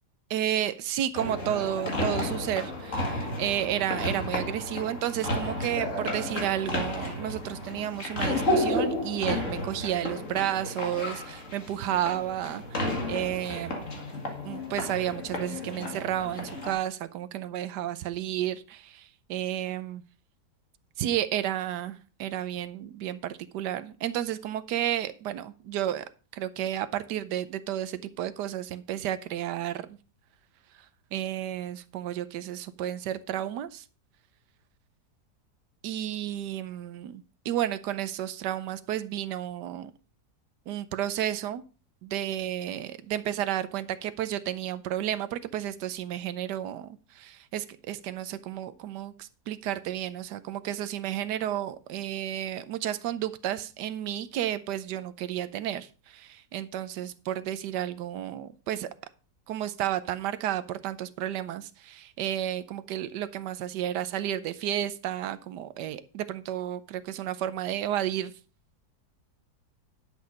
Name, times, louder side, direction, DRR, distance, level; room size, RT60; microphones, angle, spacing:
voice 1, 0.3-13.8 14.2-20.0 21.0-26.1 26.3-30.0 31.1-33.8 35.8-39.9 40.7-41.6 42.0-58.9 59.5-68.3, right 11 dB, 85° right, 13 dB, 1.3 m, -32 dB
sound 1, 1.1-16.7, left 1 dB, 50° left, 2.4 m, -32 dB
10.5 x 6.4 x 5.2 m, 0.35 s
omnidirectional pair, 1.8 m